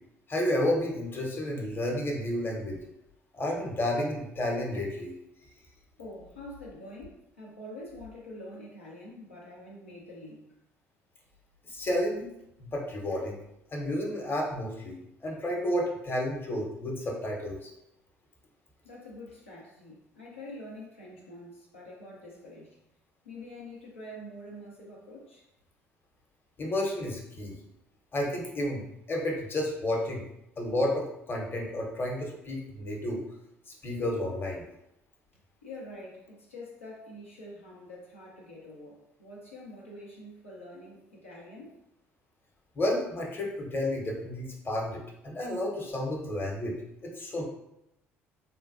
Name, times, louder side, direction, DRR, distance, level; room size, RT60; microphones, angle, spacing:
voice 1, 0.3-2.8 3.3-5.1 11.6-12.3 12.6-13.4 13.7-17.7 26.6-27.6 28.1-30.2 30.6-33.2 33.7-34.6 42.8-46.8 47.0-47.4, left 1 dB, 30° left, -1 dB, 0.8 m, -31 dB
voice 2, 6.0-10.5 18.8-22.8 23.2-25.5 35.6-41.8, left 1 dB, 90° left, -5 dB, 0.6 m, -46 dB
3.7 x 2.2 x 2.5 m, 0.84 s
figure-of-eight pair, 55°, 7 cm